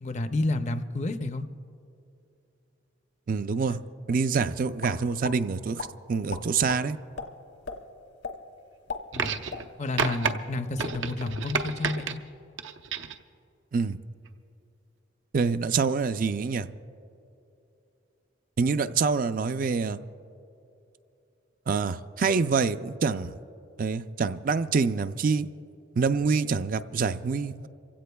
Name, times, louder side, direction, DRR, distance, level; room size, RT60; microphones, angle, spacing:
voice 1, 0.0-1.5 3.7-3.8 9.1-9.4 9.8-12.2, left 2 dB, 40° left, 9 dB, 0.5 m, -30 dB
voice 2, 3.3-3.8 4.1-7.0 13.7-14.0 15.3-16.7 18.6-20.0 21.7-23.3 23.8-25.5 26.0-27.7, right 5 dB, 45° right, 12 dB, 0.4 m, -26 dB
sound 1, 4.8-5.4 5.8-5.9 6.3-6.8 7.2-7.3 7.6-7.8 8.2-8.4 8.7-10.0 10.2-10.4 10.7-11.1, left 4 dB, 70° left, 1.1 m, -36 dB
sound 2, 9.1-9.7 10.0-10.3 10.8-12.1 12.6-13.2 14.3-14.4, right 5 dB, 85° right, 0.7 m, -30 dB
27.5 x 16.0 x 2.3 m, 2.7 s
head